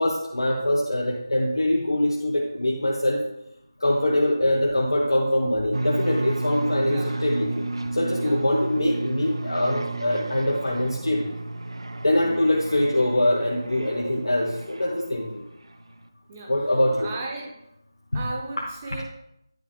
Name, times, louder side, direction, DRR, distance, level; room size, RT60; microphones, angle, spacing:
voice 1, 0.0-3.2 3.8-7.6 7.9-11.5 12.0-15.4 16.5-17.1 18.1-18.2 18.6-19.0, left 1 dB, 75° left, -2 dB, 1.1 m, -23 dB
sound 1, 5.7-15.3, right 2 dB, 80° right, 0.5 m, -32 dB
voice 2, 17.0-17.6 18.1-19.0, right 2 dB, 20° right, 0 dB, 1.0 m, -35 dB
10.0 x 5.0 x 3.3 m, 0.79 s
figure-of-eight pair, 165°, 2 cm